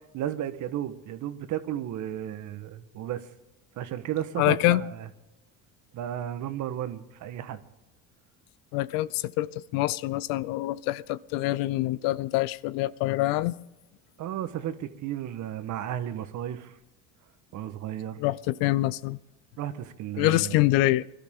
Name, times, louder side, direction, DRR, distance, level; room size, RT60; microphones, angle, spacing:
voice 1, 0.1-3.3 3.8-5.1 5.9-7.6 14.2-16.7 17.5-18.2 19.6-20.6, right 11 dB, 60° right, 11 dB, 1.4 m, -33 dB
voice 2, 4.4-4.8 8.7-13.5 18.2-19.2 20.2-21.1, left 17 dB, 75° left, 19 dB, 0.6 m, -25 dB
22.0 x 12.5 x 3.7 m, 0.94 s
supercardioid pair, 90°, 34 cm